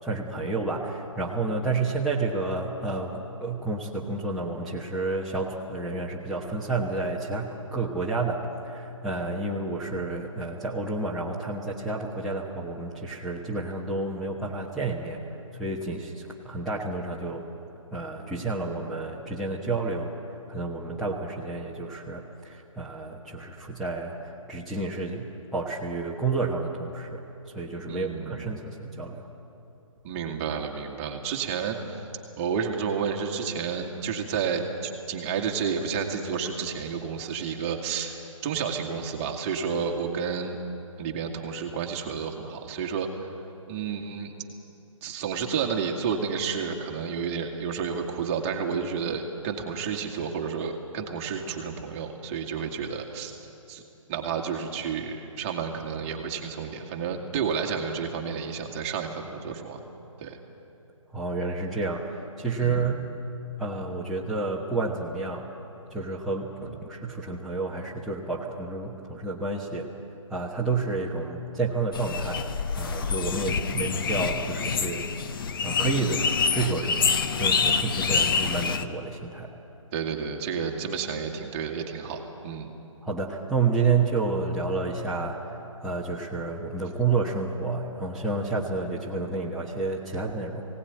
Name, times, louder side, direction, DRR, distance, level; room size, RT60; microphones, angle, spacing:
voice 1, 0.0-17.4 17.9-20.1 20.5-29.3 61.1-63.0 63.6-65.4 65.9-69.9 70.3-72.5 72.8-75.1 75.6-79.5 83.0-90.7, right 3 dB, ahead, -8 dB, 1.2 m, -30 dB
voice 2, 27.9-28.6 30.0-32.1 32.4-40.6 41.0-43.3 43.7-44.3 45.0-53.4 53.7-53.8 54.1-59.8 60.2-60.4 62.6-63.0 79.9-82.7, right 6 dB, 25° right, 2 dB, 2.0 m, -31 dB
sound 1, 71.9-78.8, left 5 dB, 40° left, 1.0 m, -26 dB
20.5 x 18.0 x 9.5 m, 2.8 s
figure-of-eight pair, 145°, 17 cm